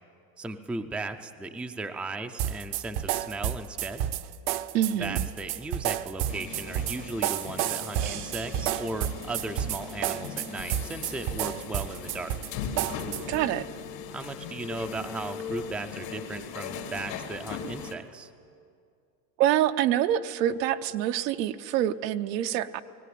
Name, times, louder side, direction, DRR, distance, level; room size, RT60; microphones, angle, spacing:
voice 1, 0.4-4.1 5.0-12.4 14.1-18.3, right 2 dB, ahead, 7 dB, 0.4 m, -36 dB
sound 1, 2.4-13.4, right 11 dB, 50° right, 0.8 m, -31 dB
voice 2, 4.7-5.2 13.3-13.7 19.4-22.8, right 11 dB, 80° right, 10 dB, 0.9 m, -26 dB
sound 2, 6.3-18.0, left 6 dB, 85° left, 2.5 m, -39 dB
18.5 x 17.0 x 9.3 m, 2.4 s
supercardioid pair, 130°, 49 cm